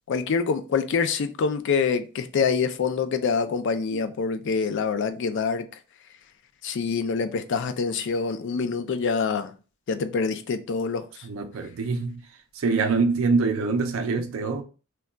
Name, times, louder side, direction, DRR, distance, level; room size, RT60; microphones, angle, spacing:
voice 1, 0.1-5.7 6.6-9.5 9.9-11.3, left 5 dB, 60° left, 0.4 m, -26 dB
voice 2, 11.2-12.2 12.5-14.6, right 4 dB, 75° right, 0.4 m, -25 dB
2.2 x 2.2 x 3.7 m
head